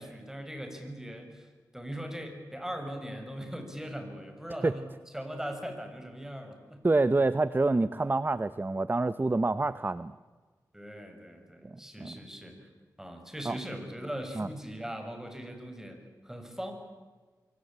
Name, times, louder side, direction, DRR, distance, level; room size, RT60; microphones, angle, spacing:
voice 1, 0.0-1.5 1.7-4.8 5.1-6.8 10.7-12.7 13.0-16.7, equal, 5° right, 5 dB, 6.4 m, -40 dB
voice 2, 6.8-10.2 11.6-12.2 13.4-13.6 14.3-14.5, right 2 dB, 30° right, 14 dB, 0.8 m, -27 dB
27.0 x 23.5 x 8.8 m, 1.4 s
cardioid pair, 65°, 7 cm